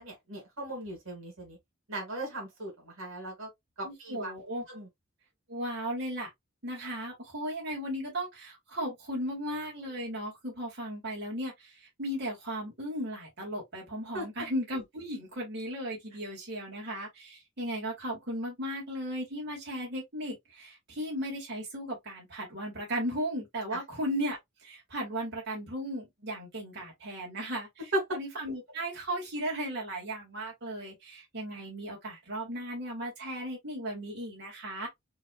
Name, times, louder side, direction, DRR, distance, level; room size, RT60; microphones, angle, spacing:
voice 1, 0.0-1.6 1.9-3.5 3.8-4.3 4.7-4.9 14.1-14.5 23.7-23.8 27.9-28.0, right 1 dB, 80° right, 2.2 m, -37 dB
voice 2, 3.8-4.6 5.5-6.3 6.6-34.9, equal, 50° right, 2.3 m, -36 dB
4.6 x 3.4 x 2.4 m
head